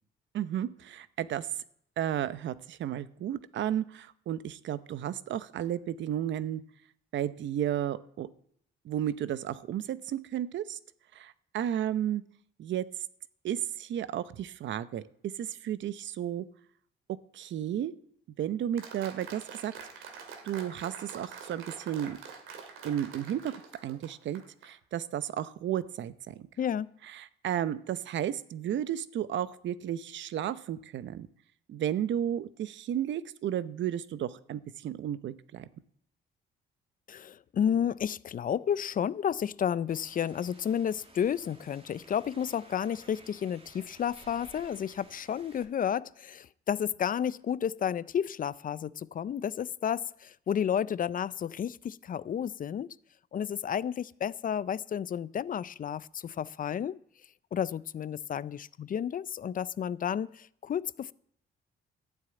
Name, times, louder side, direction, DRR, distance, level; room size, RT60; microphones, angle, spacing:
voice 1, 0.3-1.5 2.0-6.6 7.1-8.3 8.8-10.8 11.1-12.2 12.6-12.8 13.4-15.0 15.4-16.5 17.3-17.9 18.4-19.7 20.4-22.2 22.8-23.5 23.8-26.5 27.1-31.3 31.7-35.6, right 10 dB, 70° right, 0.8 m, -33 dB
Applause, 18.8-24.7, right 6 dB, 90° right, 2.3 m, -46 dB
voice 2, 26.6-26.9 37.1-53.0 53.3-57.0 57.5-61.1, left 8 dB, 45° left, 0.5 m, -31 dB
sound 1, 39.9-45.7, right 3 dB, 30° right, 2.2 m, -56 dB
13.0 x 7.2 x 9.0 m
cardioid pair, 90°, 20 cm